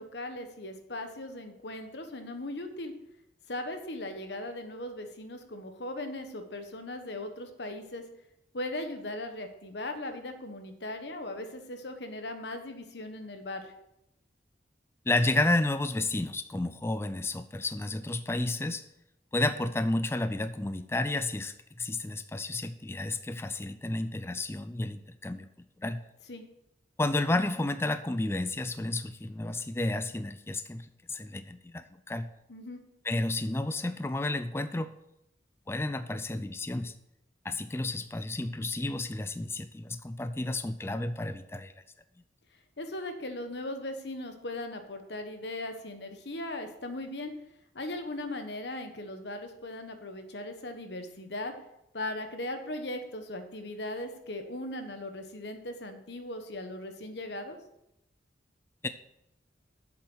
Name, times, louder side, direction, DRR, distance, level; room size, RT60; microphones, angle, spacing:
voice 1, 0.0-2.9 3.5-8.0 8.5-13.7 26.3-26.4 32.5-32.8 42.8-47.3 47.7-51.5 51.9-57.6, left 1 dB, 75° left, 7 dB, 1.3 m, -38 dB
voice 2, 15.1-18.8 19.3-26.0 27.0-32.3 33.0-34.9 35.7-36.9 37.4-41.7 58.8-58.9, left 2 dB, 15° left, 10 dB, 0.4 m, -31 dB
8.1 x 7.3 x 6.2 m, 0.84 s
head